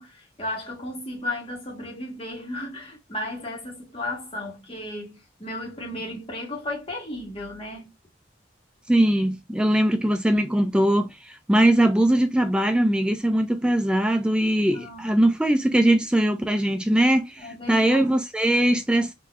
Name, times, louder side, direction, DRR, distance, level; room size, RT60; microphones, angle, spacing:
voice 1, 0.0-7.9 14.7-15.2 17.4-18.1, left 1 dB, 30° left, 1.4 m, -34 dB
voice 2, 8.9-19.1, right 1 dB, 5° right, 0.3 m, -21 dB
3.8 x 2.7 x 2.3 m
head